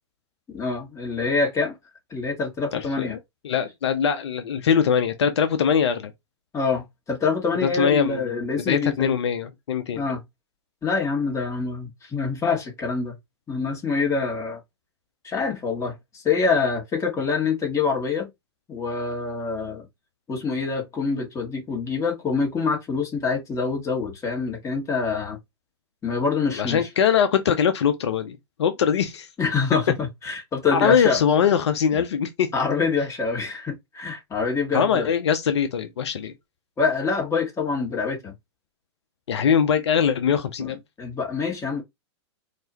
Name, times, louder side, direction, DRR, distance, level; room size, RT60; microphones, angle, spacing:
voice 1, 0.5-1.8 2.1-3.2 6.5-9.1 10.0-10.2 10.8-13.2 13.5-14.6 15.2-18.3 18.7-19.9 20.3-25.4 26.0-26.9 29.4-31.2 31.9-32.0 32.5-35.1 36.8-38.3 40.6-40.7 41.0-41.8, left 4 dB, 20° left, 1.9 m, -25 dB
voice 2, 2.7-3.2 3.4-6.1 7.6-8.3 8.7-10.2 26.6-29.3 30.7-32.5 34.7-36.3 39.3-40.8, left 7 dB, 75° left, 0.7 m, -22 dB
4.6 x 2.9 x 2.9 m
hypercardioid pair, 110°, 15 cm